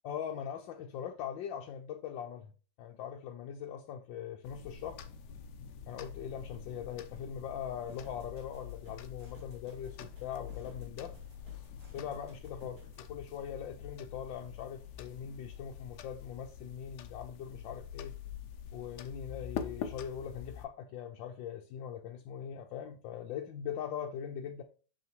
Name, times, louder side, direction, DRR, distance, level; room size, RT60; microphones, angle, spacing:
voice 1, 0.0-2.5 2.8-5.0 5.9-11.2 11.9-12.8 13.1-18.1 18.7-24.6, left 8 dB, 90° left, 1.4 m, -41 dB
sound 1, 4.4-20.7, left 8 dB, 70° left, 1.2 m, -46 dB
sound 2, 7.9-13.0, right 3 dB, 50° right, 2.8 m, -57 dB
6.4 x 5.7 x 3.0 m
omnidirectional pair, 2.0 m